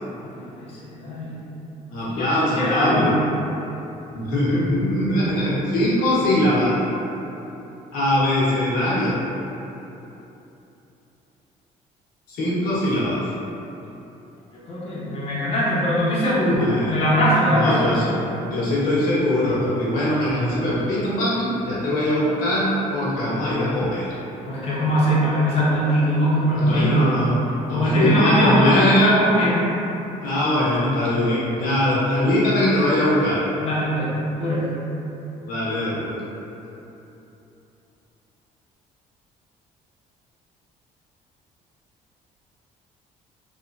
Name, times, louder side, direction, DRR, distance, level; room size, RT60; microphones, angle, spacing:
voice 1, 0.2-1.4 2.0-3.1 14.7-18.2 24.4-27.0 27.7-29.6 33.6-34.1 34.4-34.7, equal, 45° left, -8 dB, 0.8 m, -21 dB
voice 2, 1.9-3.2 4.1-6.8 7.9-9.2 12.3-13.2 16.6-16.9 17.5-18.1 18.5-24.1 26.6-27.3 27.7-29.1 30.2-33.4 35.5-36.1, left 1 dB, 85° left, -8 dB, 1.0 m, -21 dB
3.0 x 2.9 x 2.4 m, 3.0 s
cardioid pair, 160°, 15 cm